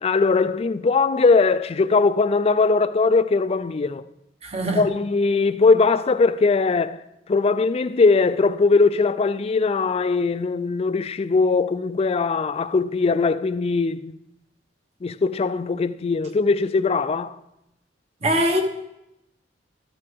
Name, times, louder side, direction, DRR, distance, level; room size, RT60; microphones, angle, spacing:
voice 1, 0.0-4.0 4.8-7.0 7.3-14.2 15.0-17.4, left 4 dB, 35° left, 0.4 m, -20 dB
voice 2, 4.4-4.9 18.2-18.6, equal, 35° right, 1.1 m, -22 dB
13.0 x 9.9 x 3.5 m
head